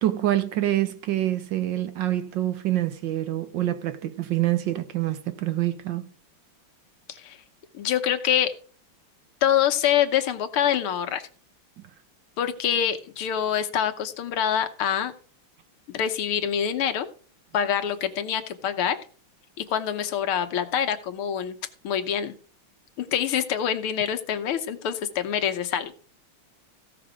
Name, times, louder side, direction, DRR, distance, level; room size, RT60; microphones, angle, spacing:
voice 1, 0.0-6.1, right 13 dB, 65° right, 1.4 m, -26 dB
voice 2, 7.7-8.5 9.4-11.3 12.4-15.1 15.9-17.1 17.5-19.0 19.6-21.6 21.8-22.3 23.0-25.9, left 9 dB, 80° left, 1.9 m, -25 dB
15.5 x 5.9 x 4.9 m
omnidirectional pair, 2.4 m